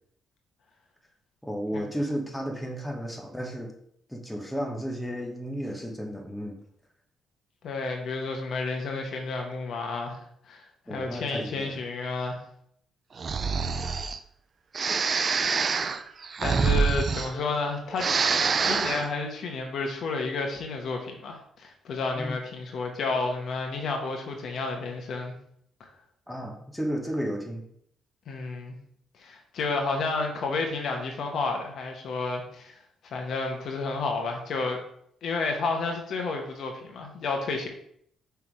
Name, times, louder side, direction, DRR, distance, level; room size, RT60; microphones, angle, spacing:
voice 1, 1.4-3.7 4.1-6.6 10.9-11.8 22.1-22.4 26.3-27.7, equal, 5° left, 1 dB, 1.2 m, -33 dB
voice 2, 7.6-10.2 10.5-10.6 10.9-12.4 16.4-18.1 18.6-25.3 28.3-28.7 29.2-32.7 33.1-34.8 35.2-37.7, left 3 dB, 65° left, 2 dB, 1.2 m, -31 dB
Breathing, 13.2-14.2 14.7-17.7 17.9-19.1, right 5 dB, 45° right, 0.4 m, -26 dB
5.7 x 3.6 x 4.7 m, 0.68 s
cardioid pair, 90°, 0 cm